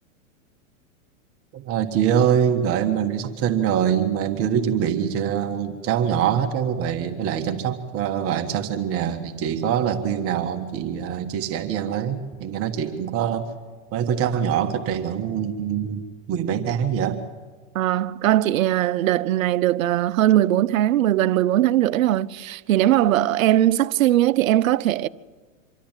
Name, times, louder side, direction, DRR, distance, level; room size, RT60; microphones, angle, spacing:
voice 1, 1.5-13.5 13.9-17.2, right 8 dB, 35° right, 1.5 m, -24 dB
voice 2, 17.7-25.1, right 13 dB, 75° right, 0.8 m, -20 dB
25.5 x 13.0 x 9.0 m
hypercardioid pair, 130°, 41 cm